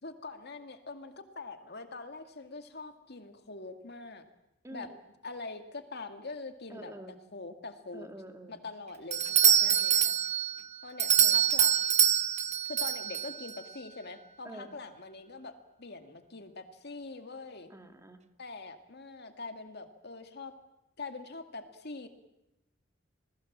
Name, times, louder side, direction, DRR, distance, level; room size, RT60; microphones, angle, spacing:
voice 1, 0.0-4.2 4.7-4.9 5.2-8.1 8.5-10.1 10.8-11.8 12.7-17.7 18.4-20.5 21.0-22.1, left 3 dB, 55° left, 7 dB, 2.2 m, -44 dB
voice 2, 4.6-5.0 6.7-7.2 7.9-8.6 9.6-9.8 11.2-11.4 14.4-14.7 17.7-18.2, right 1 dB, 15° right, 6 dB, 2.1 m, -47 dB
Doorbell, 9.1-13.6, right 9 dB, 35° right, 0.9 m, -25 dB
28.0 x 20.0 x 7.4 m, 0.89 s
head